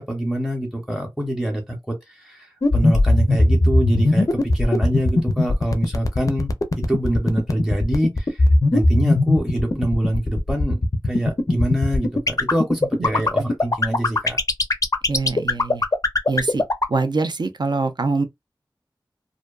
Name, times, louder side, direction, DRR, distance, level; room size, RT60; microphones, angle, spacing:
voice 1, 0.0-6.5 6.9-8.4 8.7-10.8 11.0-14.4, equal, ahead, 0.7 m, -25 dB
sound 1, 2.6-16.9, left 2 dB, 40° left, 0.4 m, -18 dB
voice 2, 15.1-15.8 16.3-16.6 16.9-18.2, right 3 dB, 60° right, 0.4 m, -24 dB
2.5 x 2.2 x 2.2 m
wide cardioid pair, 60°, 8 cm